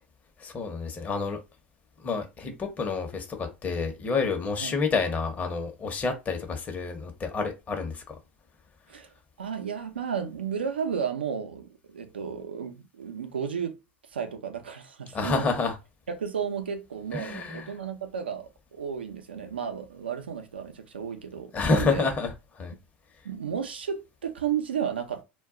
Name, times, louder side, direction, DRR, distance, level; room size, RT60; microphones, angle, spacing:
voice 1, 0.4-1.4 2.0-8.1 15.1-15.7 17.1-17.7 21.5-22.3 22.6-22.7, left 4 dB, 25° left, 0.8 m, -28 dB
voice 2, 9.4-13.7 14.1-15.5 16.1-22.1 23.2-25.2, right 7 dB, 90° right, 0.5 m, -33 dB
2.2 x 2.2 x 3.6 m
hypercardioid pair, 85°, 5 cm